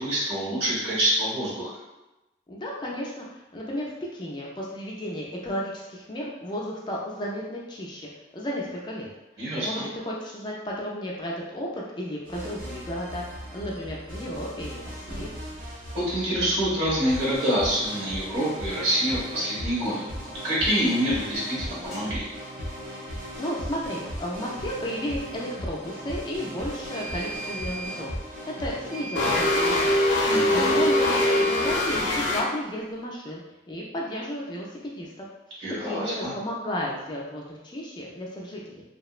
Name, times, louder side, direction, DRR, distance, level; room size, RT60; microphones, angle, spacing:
voice 1, 0.0-1.7 9.4-9.7 15.9-20.1 20.4-22.3 30.2-30.8 35.6-36.3, equal, 75° right, -7 dB, 1.4 m, -26 dB
voice 2, 2.5-3.2 3.5-8.1 8.3-9.1 9.4-15.3 23.1-28.1 28.6-30.0 30.5-33.4 33.7-35.3 35.8-38.8, equal, 25° left, -3 dB, 0.3 m, -33 dB
sound 1, 12.3-29.0, equal, 50° right, 0.6 m, -37 dB
sound 2, 21.9-22.0 26.9-28.0 28.9-30.0 30.9-32.0, right 3 dB, ahead, 0.8 m, -37 dB
sound 3, 29.2-32.4, left 1 dB, 90° left, 0.4 m, -22 dB
2.8 x 2.0 x 2.4 m, 0.99 s
head